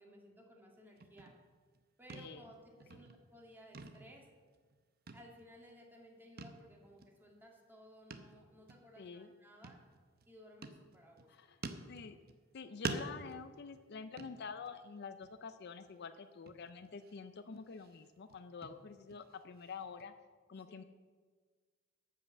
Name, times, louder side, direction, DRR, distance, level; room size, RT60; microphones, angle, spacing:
voice 1, 0.0-1.3 2.0-4.3 5.1-9.8 10.3-11.3 20.7-20.8, equal, 10° right, 0 dB, 1.9 m, -58 dB
sound 1, 1.0-1.8 2.1-2.5 2.8-3.4 3.7-4.8 5.1-5.7 6.4-6.7 7.0-7.1 8.1-8.4 8.7-8.8 9.6-10.3 10.6-11.3 11.6-12.5 12.8-14.8 15.2-15.5 15.9-16.0 16.5-17.2 17.5-20.0, right 3 dB, 50° right, 0.8 m, -47 dB
voice 2, 2.1-2.4 2.9-3.0 9.0-9.3 11.3-11.6 11.9-12.2 12.5-20.1 20.5-20.8, left 5 dB, 55° left, 10 dB, 0.5 m, -48 dB
12.0 x 5.6 x 7.5 m, 1.5 s
head